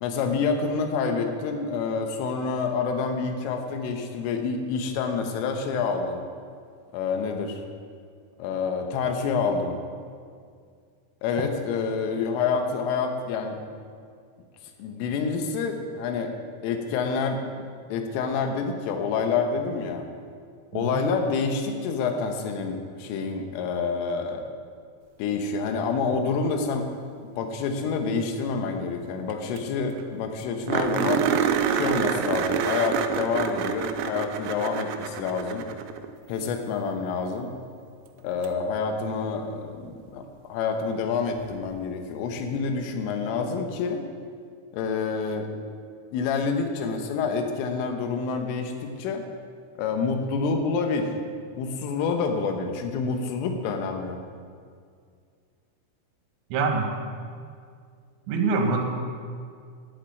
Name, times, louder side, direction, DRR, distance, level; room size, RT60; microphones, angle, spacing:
voice 1, 0.0-6.2 6.9-7.6 8.4-9.8 11.2-13.6 14.8-16.3 16.6-20.1 20.7-24.4 25.2-26.9 27.4-31.3 31.7-35.7 36.3-37.5 38.2-44.0 44.7-45.5 46.1-49.2 49.8-51.1 51.6-54.2, left 5 dB, 80° left, 5 dB, 3.6 m, -28 dB
sound 1, 29.3-29.4 29.6-29.7 30.0-30.1 30.7-36.1 38.4-38.5 41.4-41.5, right 8 dB, 90° right, 2.6 m, -27 dB
voice 2, 56.5-56.9 58.3-58.8, right 4 dB, 70° right, 3 dB, 3.6 m, -24 dB
11.0 x 8.0 x 9.1 m, 2.2 s
omnidirectional pair, 5.9 m